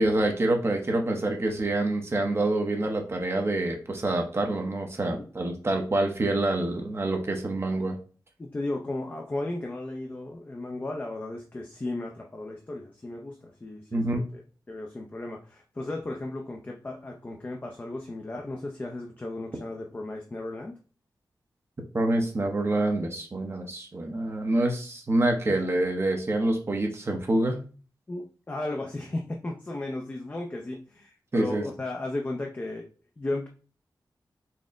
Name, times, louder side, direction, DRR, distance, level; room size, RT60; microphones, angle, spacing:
voice 1, 0.0-8.0 13.9-14.2 21.9-27.6 31.3-31.6, right 2 dB, 35° right, 2 dB, 0.7 m, -26 dB
voice 2, 8.4-14.4 14.7-20.8 25.5-25.6 28.1-32.9 33.2-33.5, left 2 dB, 25° left, 1 dB, 0.5 m, -35 dB
4.2 x 2.0 x 3.5 m, 0.38 s
wide cardioid pair, 115°, 8 cm